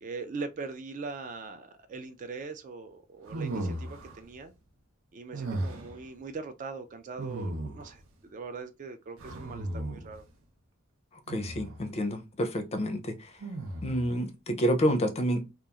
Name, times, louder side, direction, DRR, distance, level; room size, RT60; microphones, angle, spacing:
voice 1, 0.0-4.5 5.1-8.0 8.3-10.2, right 4 dB, 40° right, 0.3 m, -41 dB
sound 1, 3.3-4.2 5.3-6.0 7.2-8.0 9.2-10.2 11.3-11.8 13.4-14.1, right 2 dB, 85° right, 0.6 m, -36 dB
voice 2, 11.3-13.2 13.8-15.6, equal, 30° left, 0.4 m, -28 dB
2.8 x 2.3 x 2.3 m
head